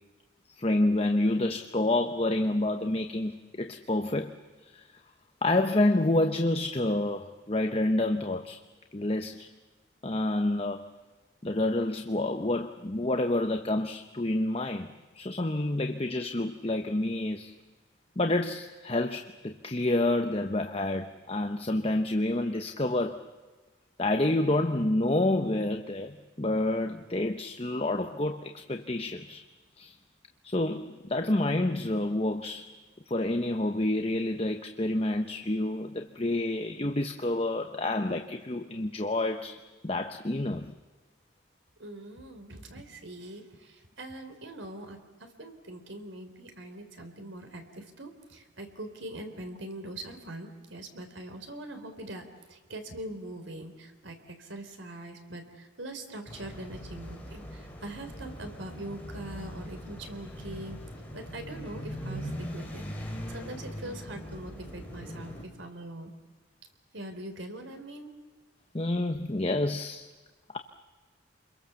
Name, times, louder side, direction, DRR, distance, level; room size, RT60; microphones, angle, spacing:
voice 1, 0.5-4.4 4.6-4.9 5.4-8.6 8.9-9.5 10.0-10.8 11.4-17.5 18.2-23.2 24.0-29.4 29.8-29.9 30.4-32.7 33.1-40.7 68.7-70.1 70.5-70.6, left 1 dB, 30° left, 6 dB, 0.9 m, -28 dB
voice 2, 41.8-60.8 61.1-62.9 63.3-66.1 66.9-68.1, right 1 dB, 75° right, 6 dB, 3.9 m, -42 dB
sound 1, 56.3-65.4, equal, 10° left, 4.2 m, -40 dB
28.0 x 22.5 x 7.1 m, 1.3 s
head